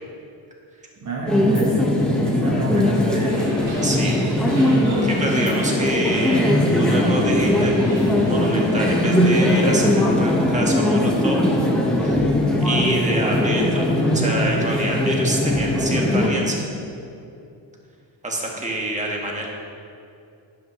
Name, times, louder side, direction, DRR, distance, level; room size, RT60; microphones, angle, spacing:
voice 1, 1.0-3.5, right 2 dB, 40° right, -2 dB, 1.2 m, -29 dB
sound 1, 1.3-16.3, left 1 dB, ahead, 1.4 m, -20 dB
sound 2, 3.3-9.5, right 1 dB, 55° right, 2.5 m, -38 dB
voice 2, 3.8-4.3 5.0-11.4 12.0-12.2 12.6-16.7 18.2-19.5, right 1 dB, 15° right, -2 dB, 1.6 m, -27 dB
11.5 x 10.5 x 3.2 m, 2.6 s
cardioid pair, 140°, 45 cm